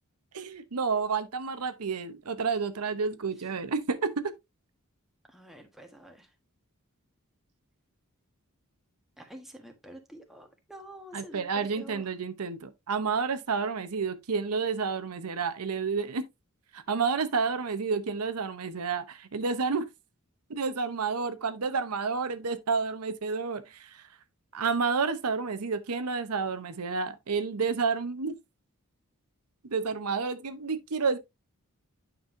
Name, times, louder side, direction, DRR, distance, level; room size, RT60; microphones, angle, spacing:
voice 1, 0.3-4.3 11.1-16.3 16.7-19.9 20.5-24.0 24.5-28.4 29.6-31.2, right 5 dB, 85° right, 0.8 m, -30 dB
voice 2, 5.3-6.3 9.2-12.0, right 1 dB, ahead, 1.4 m, -48 dB
9.0 x 5.4 x 2.6 m
head